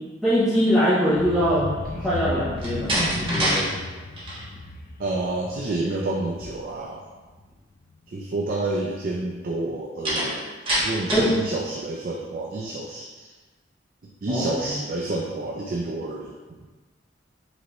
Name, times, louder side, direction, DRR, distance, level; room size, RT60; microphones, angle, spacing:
voice 1, 0.2-1.7 2.0-3.7 11.1-11.3 14.3-14.7, equal, ahead, -11 dB, 0.7 m, -22 dB
sound 1, 1.1-6.9 7.3-7.5 7.8-7.9, left 2 dB, 50° left, 0.4 m, -34 dB
Slam, 2.5-3.6 4.0-4.4 10.0-11.4, right 1 dB, 30° right, 1.2 m, -25 dB
voice 2, 5.0-7.1 8.1-10.4 10.8-13.3 14.2-16.6, right 2 dB, 50° right, -1 dB, 0.4 m, -29 dB
5.3 x 3.1 x 3.0 m, 1.3 s
head